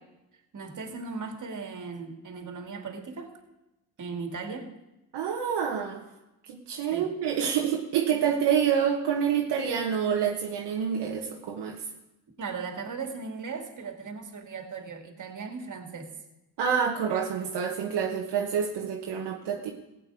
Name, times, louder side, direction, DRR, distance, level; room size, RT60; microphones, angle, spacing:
voice 1, 0.5-3.4 4.0-4.7 6.9-7.1 12.4-16.1, right 4 dB, 45° right, 6 dB, 2.3 m, -37 dB
voice 2, 5.1-6.0 6.5-11.8 16.6-19.7, right 7 dB, 75° right, 1 dB, 1.3 m, -27 dB
15.5 x 8.8 x 4.9 m, 0.95 s
supercardioid pair, 65°, 41 cm